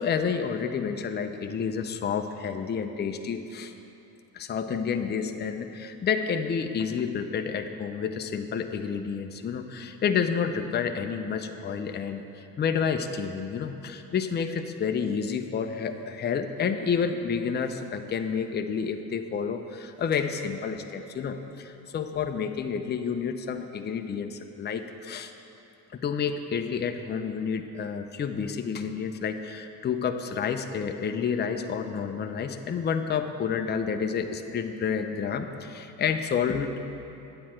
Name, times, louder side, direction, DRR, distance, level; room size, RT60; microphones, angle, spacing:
voice 1, 0.0-3.7 4.3-25.3 25.9-36.8, left 6 dB, 20° left, 6 dB, 0.5 m, -29 dB
9.2 x 7.6 x 4.4 m, 3.0 s
supercardioid pair, 85°, 49 cm